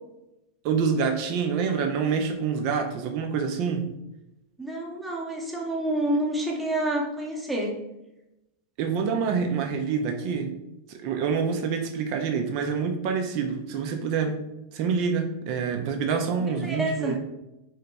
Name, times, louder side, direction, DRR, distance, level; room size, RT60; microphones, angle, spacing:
voice 1, 0.6-3.9 8.8-10.5 10.9-14.4 14.7-17.2, right 6 dB, 45° right, 4 dB, 0.4 m, -26 dB
voice 2, 4.6-7.8 16.6-17.2, right 1 dB, 5° right, -1 dB, 0.8 m, -28 dB
2.9 x 2.8 x 3.4 m, 0.91 s
figure-of-eight pair, 90°, 0 cm